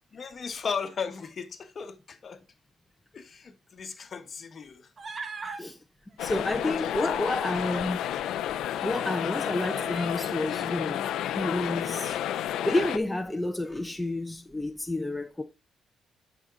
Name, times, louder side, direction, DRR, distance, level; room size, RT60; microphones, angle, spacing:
voice 1, 0.1-2.4 3.1-4.9 6.6-6.9, left 6 dB, 45° left, 1.2 m, -36 dB
Human voice, 5.0-5.6 6.8-7.9 8.7-8.8 9.7-10.4, right 4 dB, 40° right, 1.3 m, -40 dB
voice 2, 5.4-5.8 6.2-8.1 8.8-12.2 12.6-15.4, left 1 dB, 10° left, 0.8 m, -30 dB
sound 1, 6.2-13.0, left 11 dB, 85° left, 0.4 m, -31 dB
9.9 x 5.1 x 3.8 m
cardioid pair, 90°, 0 cm